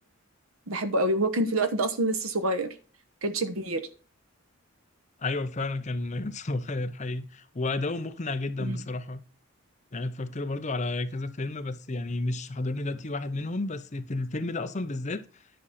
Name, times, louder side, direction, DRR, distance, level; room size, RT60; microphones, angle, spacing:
voice 1, 0.7-2.7 3.2-3.8 8.6-8.8, right 1 dB, 75° right, 1.1 m, -27 dB
voice 2, 5.2-9.2 9.9-15.2, left 2 dB, 35° left, 0.7 m, -31 dB
10.5 x 6.2 x 4.2 m
head